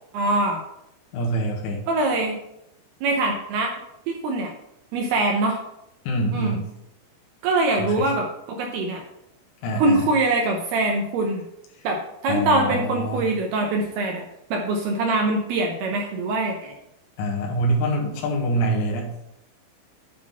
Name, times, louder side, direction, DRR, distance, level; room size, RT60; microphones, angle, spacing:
voice 1, 0.1-0.7 1.9-2.4 3.0-3.7 4.1-4.5 4.9-5.6 6.3-6.6 7.4-9.0 9.8-11.4 11.8-14.2 14.5-16.7, right 2 dB, 75° right, 1 dB, 2.4 m, -23 dB
voice 2, 1.1-1.8 6.1-6.7 7.8-7.9 9.6-10.0 12.3-13.2 17.2-19.1, right 1 dB, 85° left, -1 dB, 3.9 m, -25 dB
9.8 x 3.8 x 5.6 m, 0.81 s
omnidirectional pair, 5.4 m